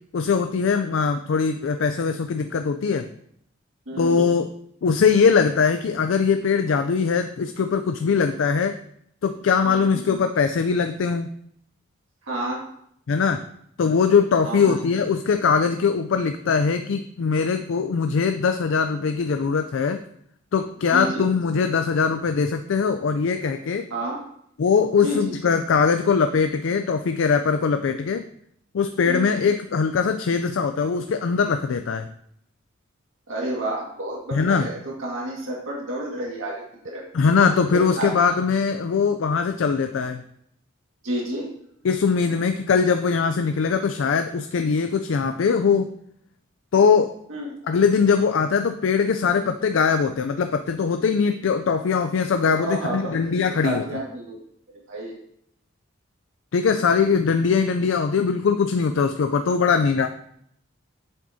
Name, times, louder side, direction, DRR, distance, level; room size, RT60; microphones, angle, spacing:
voice 1, 0.1-3.1 4.0-4.5 4.8-8.8 9.2-11.3 13.1-13.4 13.8-20.0 20.5-23.8 24.6-28.2 28.7-32.1 34.3-34.7 37.1-40.2 41.8-45.9 46.7-47.1 47.7-53.8 56.5-60.1, left 5 dB, 75° left, 7 dB, 0.4 m, -21 dB
voice 2, 3.9-4.3 9.7-9.9 12.2-12.6 14.4-14.8 20.9-21.2 23.9-24.2 25.0-25.3 29.1-29.5 33.3-37.1 37.7-38.1 41.0-41.5 47.3-47.6 52.6-54.3 54.9-55.1, right 1 dB, 85° right, -3 dB, 1.8 m, -30 dB
7.7 x 7.1 x 2.7 m, 0.70 s
head